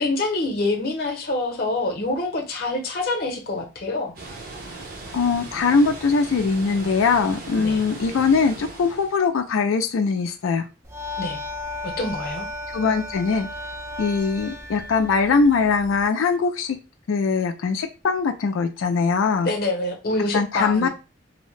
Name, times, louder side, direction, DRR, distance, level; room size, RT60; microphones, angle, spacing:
voice 1, 0.0-4.1 7.6-7.8 11.2-11.4 11.8-12.5 19.4-20.9, left 2 dB, 50° left, 2 dB, 0.8 m, -26 dB
Water, 4.2-9.2, right 2 dB, 45° right, 0.7 m, -38 dB
voice 2, 5.1-10.6 12.7-13.5 14.0-16.8 17.1-19.5 20.3-20.9, left 4 dB, 85° left, 6 dB, 0.4 m, -21 dB
sound 1, 10.8-16.1, left 2 dB, 15° right, 0.3 m, -34 dB
2.7 x 2.0 x 3.1 m, 0.29 s
head